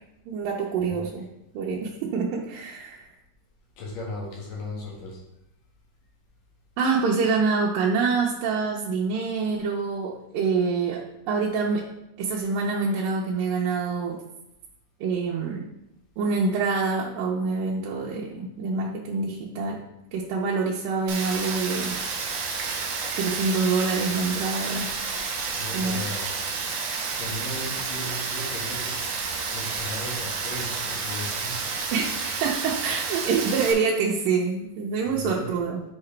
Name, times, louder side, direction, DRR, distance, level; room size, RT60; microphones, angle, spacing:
voice 1, 0.3-1.3 1.5-3.1 6.8-11.0 11.3-11.8 12.2-14.2 15.0-15.7 16.2-19.8 20.1-22.0 23.2-24.9 25.7-26.1 31.9-32.1 32.4-35.8, right 4 dB, 85° right, -4 dB, 2.5 m, -26 dB
voice 2, 3.8-5.2 25.5-26.3 27.1-29.1 29.5-31.6 35.2-35.6, left 1 dB, 75° left, -3 dB, 3.3 m, -36 dB
Rain, 21.1-33.7, right 4 dB, 65° right, 1.7 m, -30 dB
8.0 x 4.8 x 3.3 m, 0.88 s
omnidirectional pair, 3.9 m